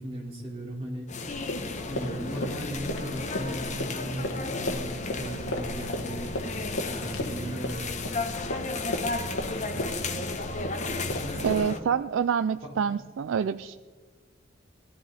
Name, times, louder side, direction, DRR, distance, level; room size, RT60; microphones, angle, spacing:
voice 1, 0.0-1.5 1.8-6.3 6.8-8.2 11.2-11.7 12.6-12.9, right 1 dB, 30° right, -4 dB, 4.4 m, -37 dB
sound 1, 1.1-11.8, left 3 dB, 35° left, 0.9 m, -34 dB
sound 2, 1.3-11.6, left 1 dB, 85° left, 1.4 m, -36 dB
voice 2, 11.4-13.8, right 7 dB, 75° right, 12 dB, 0.3 m, -27 dB
18.5 x 13.0 x 4.2 m, 1.4 s
head